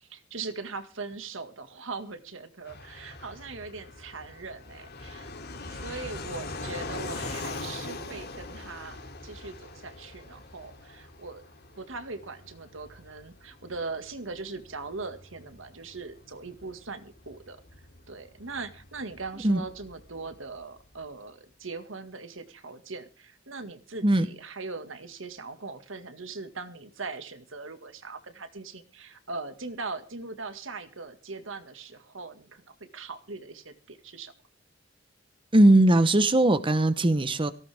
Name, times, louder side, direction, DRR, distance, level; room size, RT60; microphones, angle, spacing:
voice 1, 0.0-5.3 5.7-11.4 11.8-17.6 18.1-34.3, right 3 dB, 75° right, 2.0 m, -40 dB
Fixed-wing aircraft airplane, 2.7-21.0, left 3 dB, 55° left, 3.2 m, -42 dB
voice 2, 35.5-37.5, right 1 dB, 25° right, 1.0 m, -20 dB
18.0 x 17.0 x 3.6 m
head